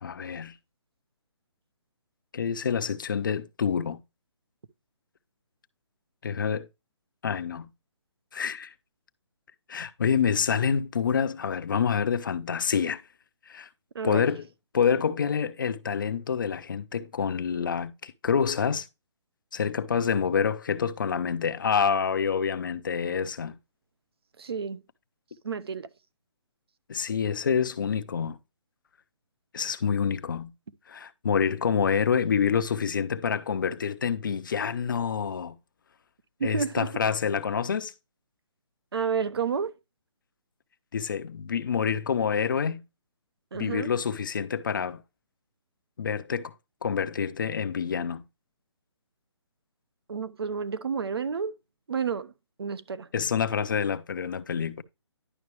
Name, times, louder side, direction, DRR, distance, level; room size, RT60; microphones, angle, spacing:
voice 1, 0.0-0.5 2.3-4.0 6.2-6.7 7.2-7.7 8.3-8.7 9.7-13.0 13.5-13.7 14.0-14.5 14.7-18.9 19.5-23.6 26.9-28.4 29.5-30.5 30.9-35.6 36.4-37.9 40.9-42.8 43.5-45.0 46.0-46.5 46.8-48.2 53.1-54.8, left 6 dB, 45° left, 0.8 m, -27 dB
voice 2, 24.4-24.8 25.4-25.9 36.4-36.9 38.9-39.7 43.5-43.9 50.1-51.5 51.9-52.3 52.6-53.1, right 6 dB, 55° right, 0.9 m, -30 dB
11.0 x 5.8 x 3.1 m
hypercardioid pair, 170°, 15 cm